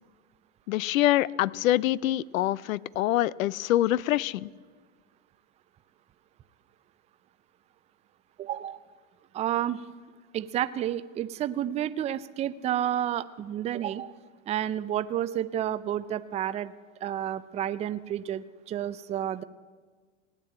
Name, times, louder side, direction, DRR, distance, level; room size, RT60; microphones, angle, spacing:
voice 1, 0.7-4.5, left 14 dB, 80° left, 22 dB, 0.6 m, -25 dB
voice 2, 8.4-8.8 9.3-9.8 10.3-14.2 14.5-16.7 17.0-19.4, right 11 dB, 15° right, 14 dB, 0.4 m, -30 dB
17.5 x 9.1 x 8.8 m, 1.5 s
hypercardioid pair, 115°, 40 cm